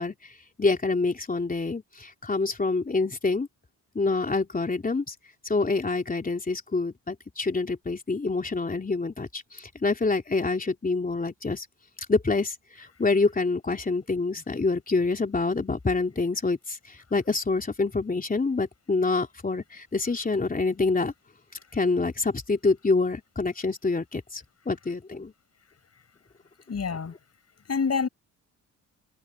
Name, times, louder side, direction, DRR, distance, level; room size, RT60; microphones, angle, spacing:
voice 1, 0.0-3.5 3.9-5.1 5.4-11.7 12.1-21.1 21.7-25.3, left 3 dB, 25° left, 3.3 m, -26 dB
voice 2, 26.7-27.2 27.6-28.1, left 5 dB, 45° left, 6.2 m, -27 dB
cardioid pair, 75°, 34 cm